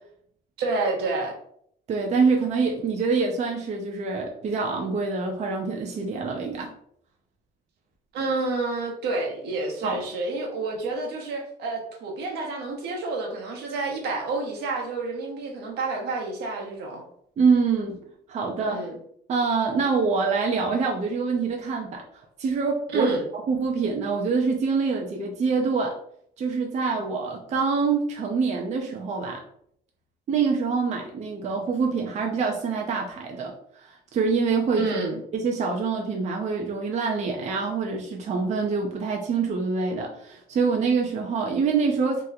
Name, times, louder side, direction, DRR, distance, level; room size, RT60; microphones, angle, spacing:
voice 1, 0.6-1.3 8.1-17.0 18.7-19.0 22.9-23.2 34.8-35.2, right 3 dB, 75° right, 0 dB, 0.9 m, -29 dB
voice 2, 1.9-6.7 9.8-10.0 17.4-18.0 18.3-18.8 19.3-22.0 22.4-23.1 23.5-26.0 26.4-29.4 30.3-34.9 35.3-42.2, right 4 dB, 40° right, 1 dB, 0.5 m, -25 dB
2.9 x 2.1 x 3.6 m, 0.67 s
cardioid pair, 110°, 17 cm